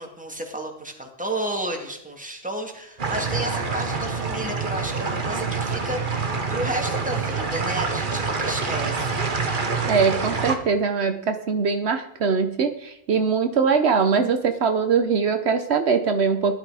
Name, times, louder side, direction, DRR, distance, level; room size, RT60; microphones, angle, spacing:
voice 1, 0.0-9.2, right 1 dB, 5° right, 1 dB, 2.2 m, -32 dB
sound 1, 3.0-10.6, right 4 dB, 50° right, 1.4 m, -26 dB
voice 2, 9.8-16.6, right 5 dB, 70° right, 7 dB, 1.1 m, -22 dB
15.5 x 11.0 x 4.8 m, 0.77 s
omnidirectional pair, 1.1 m